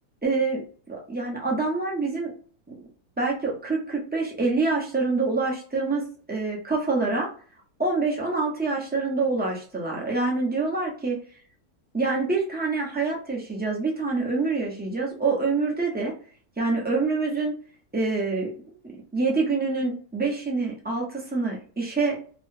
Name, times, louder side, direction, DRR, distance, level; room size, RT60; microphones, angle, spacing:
voice 1, 0.2-2.3 2.7-2.8 3.2-7.3 7.8-11.2 11.9-16.1 16.6-17.5 17.9-18.5 19.1-22.4, right 3 dB, 15° right, -2 dB, 0.3 m, -26 dB
3.0 x 2.2 x 3.2 m, 0.42 s
omnidirectional pair, 1.6 m